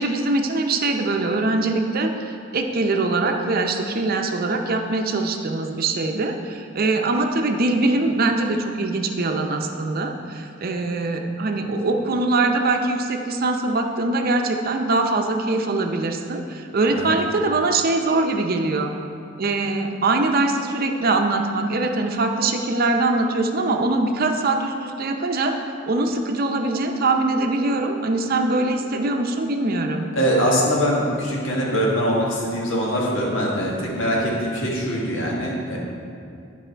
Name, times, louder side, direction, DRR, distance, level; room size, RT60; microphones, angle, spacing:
voice 1, 0.0-18.9 19.4-25.5 25.9-30.1, right 2 dB, 50° right, 4 dB, 0.6 m, -22 dB
voice 2, 30.1-35.8, equal, 80° left, -3 dB, 1.6 m, -22 dB
10.5 x 4.8 x 4.4 m, 2.4 s
head